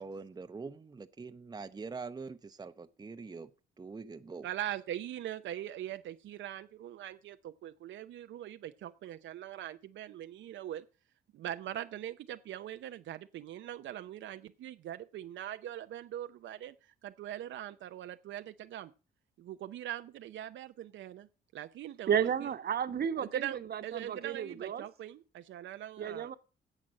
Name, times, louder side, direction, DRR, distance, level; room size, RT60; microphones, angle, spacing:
voice 1, 0.0-3.5 3.8-4.5, right 4 dB, 20° right, 0.7 m, -44 dB
voice 2, 4.4-10.8 11.3-16.7 17.0-18.9 19.4-21.3 21.5-22.5 23.2-26.3, right 12 dB, 70° right, 0.6 m, -42 dB
voice 3, 22.1-24.8 26.0-26.3, right 8 dB, 50° right, 1.2 m, -33 dB
10.5 x 7.4 x 6.4 m
cardioid pair, 90°, 20 cm